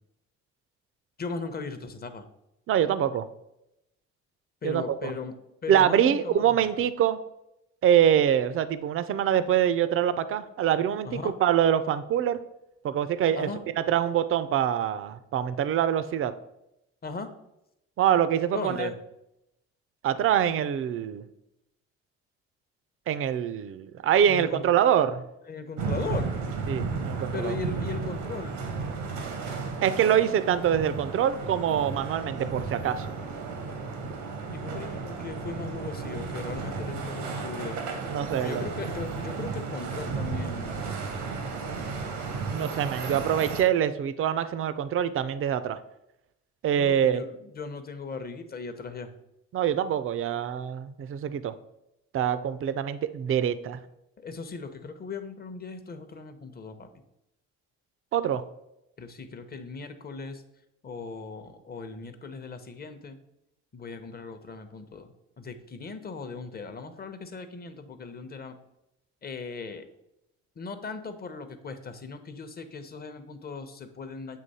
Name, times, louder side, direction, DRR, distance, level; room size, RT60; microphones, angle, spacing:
voice 1, 1.2-2.3 4.6-5.3 5.6-6.7 11.0-11.3 13.3-13.6 17.0-17.3 18.5-18.9 24.3-24.7 25.5-26.4 27.3-28.6 34.5-37.8 38.0-40.8 46.8-49.1 54.2-56.9 59.0-60.4 60.8-63.2 63.7-68.6 69.2-69.9 70.6-74.4, left 4 dB, 30° left, 9 dB, 0.7 m, -38 dB
voice 2, 2.7-3.3 4.6-5.1 5.7-7.2 7.8-12.4 12.8-13.5 13.9-16.3 18.0-18.9 20.0-21.2 23.1-25.2 26.7-27.5 29.8-33.1 38.1-38.7 42.5-45.8 46.6-47.2 49.5-51.5 52.1-53.8 58.1-58.4, right 9 dB, 45° right, 14 dB, 0.4 m, -25 dB
sound 1, 25.8-43.6, right 4 dB, 90° right, 1.1 m, -33 dB
7.5 x 3.0 x 4.1 m, 0.86 s
supercardioid pair, 70°, 30 cm